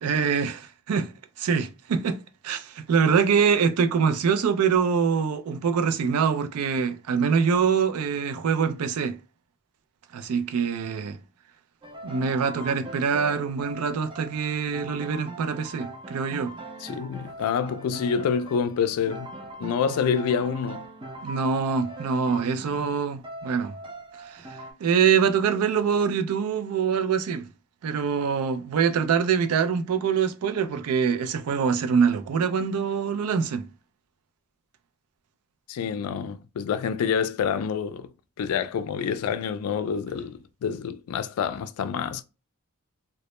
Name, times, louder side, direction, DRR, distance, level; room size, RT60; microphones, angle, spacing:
voice 1, 0.0-1.1 1.4-9.2 10.1-11.2 12.0-16.5 21.2-23.8 24.2-27.5 27.8-33.6, right 6 dB, 85° right, 0.4 m, -24 dB
sound 1, 11.8-24.7, right 2 dB, 20° right, 0.4 m, -41 dB
voice 2, 16.8-19.3 19.6-20.8 35.7-38.1 38.4-42.2, left 7 dB, 80° left, 0.3 m, -27 dB
2.1 x 2.0 x 2.9 m
head